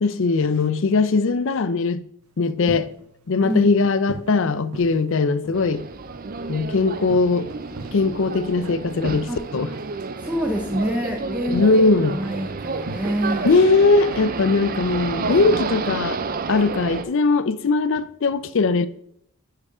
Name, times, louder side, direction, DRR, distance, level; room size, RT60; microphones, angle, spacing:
voice 1, 0.0-2.0 2.4-2.9 3.3-5.8 6.5-7.5 7.9-9.8 11.5-12.2 13.4-16.2 16.5-18.9, left 3 dB, 60° left, 0.5 m, -20 dB
sound 1, 2.2-15.7, right 1 dB, 80° right, 0.8 m, -42 dB
sound 2, 5.5-17.0, right 4 dB, 40° right, 0.5 m, -30 dB
voice 2, 10.2-13.5, right 1 dB, 5° right, 0.7 m, -26 dB
9.7 x 4.6 x 4.9 m
head